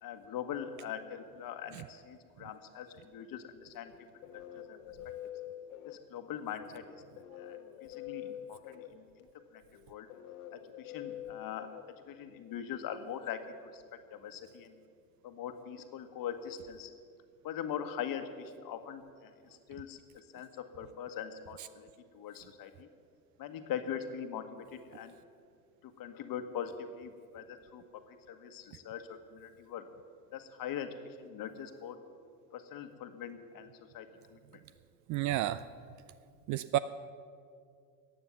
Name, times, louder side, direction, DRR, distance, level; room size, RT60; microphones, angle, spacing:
voice 1, 0.0-3.9 4.3-4.8 5.8-9.0 9.5-9.6 9.9-10.1 10.5-11.7 12.1-13.8 14.1-14.7 15.2-16.9 17.4-21.9 22.1-22.9 23.4-25.1 25.8-29.9 30.3-32.0 32.5-34.4, left 8 dB, 45° left, 8 dB, 1.5 m, -42 dB
sound 1, 3.9-12.6, left 11 dB, 70° left, 1.2 m, -47 dB
voice 2, 35.1-35.6 36.5-36.8, right 14 dB, 40° right, 15 dB, 0.4 m, -30 dB
15.5 x 9.3 x 7.1 m, 2.3 s
hypercardioid pair, 85°, 49 cm